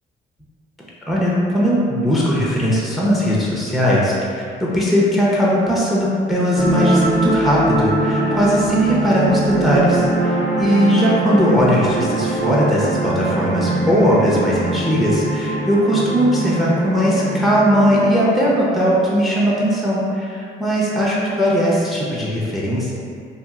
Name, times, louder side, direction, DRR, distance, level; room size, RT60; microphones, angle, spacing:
voice 1, 1.1-22.9, equal, ahead, -6 dB, 0.6 m, -18 dB
sound 1, 6.6-18.6, right 2 dB, 40° right, 0.6 m, -22 dB
2.8 x 2.7 x 2.4 m, 2.4 s
cardioid pair, 90°, 20 cm